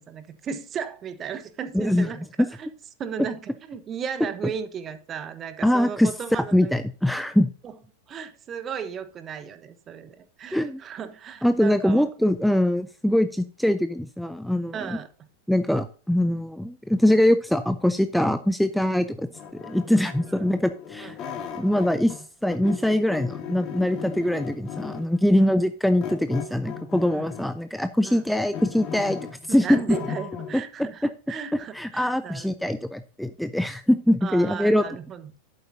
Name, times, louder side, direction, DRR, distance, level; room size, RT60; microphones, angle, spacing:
voice 1, 0.0-2.3 2.6-2.7 3.0-6.7 8.1-12.1 14.7-15.1 20.3-20.5 21.0-21.1 25.3-25.5 27.1-27.3 28.0-28.2 29.5-32.5 34.2-35.3, right 7 dB, 25° right, 11 dB, 1.2 m, -35 dB
voice 2, 1.7-2.1 2.4-2.5 5.6-6.1 6.5-7.5 10.5-10.8 11.4-15.0 15.5-19.3 19.6-21.2 21.5-29.2 29.5-29.8 30.5-30.6 31.0-31.1 31.5-34.8, left 1 dB, ahead, 11 dB, 0.5 m, -23 dB
sound 1, 19.3-22.2 22.5-25.2 26.0-27.6 28.0-30.5, left 7 dB, 35° left, 2.5 m, -37 dB
11.5 x 8.6 x 2.7 m, 0.38 s
figure-of-eight pair, 90°, 0 cm